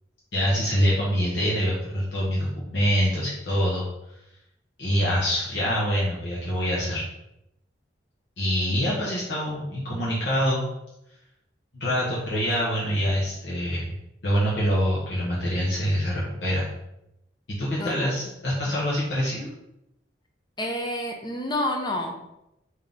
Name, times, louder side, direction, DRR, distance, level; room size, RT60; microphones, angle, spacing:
voice 1, 0.3-3.8 4.8-7.0 8.4-10.6 11.7-13.9 14.2-16.7 17.6-19.5, equal, 75° left, -6 dB, 0.8 m, -25 dB
voice 2, 20.6-22.1, left 1 dB, 25° left, 3 dB, 0.5 m, -28 dB
3.5 x 2.7 x 3.8 m, 0.85 s
head